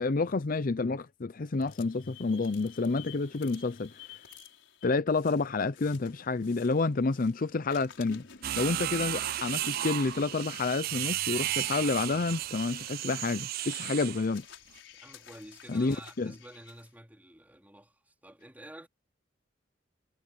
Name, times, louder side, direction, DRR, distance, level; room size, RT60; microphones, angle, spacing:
voice 1, 0.0-3.9 4.8-8.3 8.6-14.4 15.7-16.3, left 3 dB, 50° left, 0.6 m, -29 dB
sound 1, 1.5-7.4 7.7-16.9, left 7 dB, 90° left, 5.3 m, -53 dB
sound 2, 8.4-14.3, right 14 dB, 55° right, 0.3 m, -34 dB
voice 2, 14.9-18.9, right 1 dB, 10° right, 3.9 m, -50 dB
head